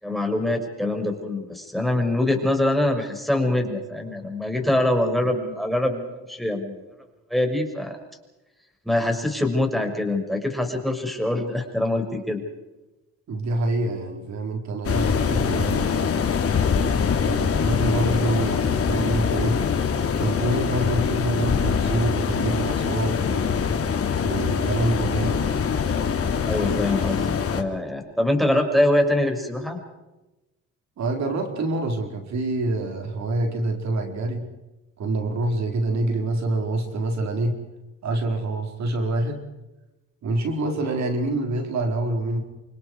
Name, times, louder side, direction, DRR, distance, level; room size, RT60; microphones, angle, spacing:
voice 1, 0.0-6.7 7.3-8.0 8.8-12.4 26.4-29.8, left 1 dB, ahead, 4 dB, 6.2 m, -24 dB
voice 2, 13.3-16.2 17.2-19.6 20.2-23.6 24.2-25.4 31.0-34.4 35.0-37.5 38.0-39.4 40.2-42.4, right 2 dB, 65° right, 3 dB, 4.7 m, -26 dB
sound 1, 14.8-27.6, left 6 dB, 50° left, 3.1 m, -23 dB
29.0 x 26.0 x 4.8 m, 1.0 s
cardioid pair, 90°, 30 cm